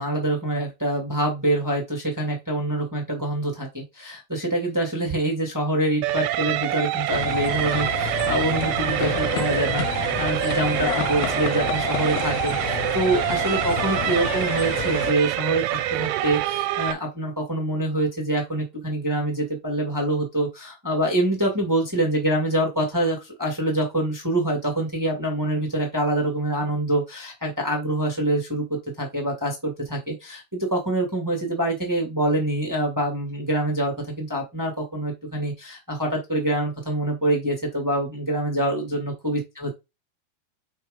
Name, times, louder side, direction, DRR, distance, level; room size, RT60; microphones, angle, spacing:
voice 1, 0.0-39.7, right 1 dB, 30° right, 1 dB, 0.3 m, -25 dB
sound 1, 6.0-16.9, right 14 dB, 90° right, 2.6 m, -26 dB
sound 2, 7.1-15.1, left 14 dB, 90° left, 2.6 m, -30 dB
5.4 x 4.6 x 5.1 m, 0.24 s
omnidirectional pair, 4.5 m